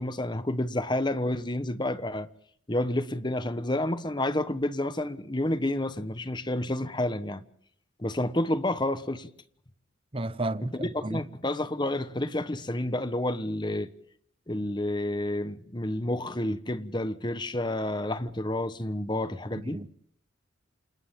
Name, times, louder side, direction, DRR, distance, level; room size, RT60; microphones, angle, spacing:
voice 1, 0.0-2.3 2.7-7.4 8.0-9.3 10.8-13.9 14.5-19.8, left 1 dB, 20° left, 1.1 m, -29 dB
voice 2, 10.1-11.2 19.6-19.9, right 2 dB, 30° right, 1.0 m, -32 dB
29.0 x 27.0 x 3.8 m
head